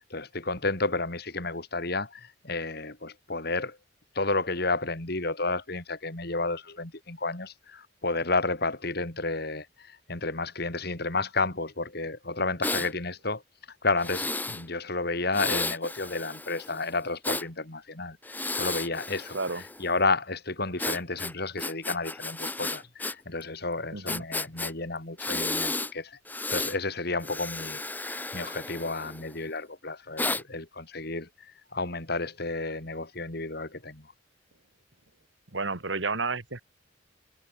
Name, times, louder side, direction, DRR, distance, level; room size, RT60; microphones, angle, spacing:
voice 1, 0.1-3.8 4.1-13.4 13.8-18.2 18.5-26.2 26.5-34.1, left 3 dB, 55° left, 3.3 m, -31 dB
Breathing, 12.6-12.9 14.0-14.6 15.3-17.5 18.2-19.9 20.8-23.1 23.4-23.5 24.1-24.7 25.2-25.9 26.3-26.8 27.2-29.4 30.2-30.4, left 2 dB, 10° left, 1.1 m, -33 dB
voice 2, 23.9-24.2 35.5-36.6, right 3 dB, 65° right, 2.3 m, -31 dB
head